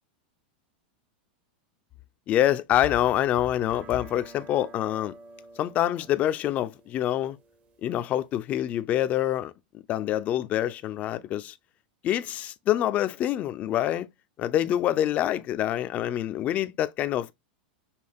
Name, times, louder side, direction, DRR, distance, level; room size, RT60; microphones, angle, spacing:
voice 1, 2.3-5.1 5.6-7.4 7.8-9.5 9.9-11.6 12.0-14.1 14.4-17.3, left 12 dB, 30° left, 0.4 m, -26 dB
sound 1, 3.6-8.6, right 3 dB, 25° right, 0.6 m, -51 dB
5.5 x 2.2 x 3.4 m
supercardioid pair, 145°, 5 cm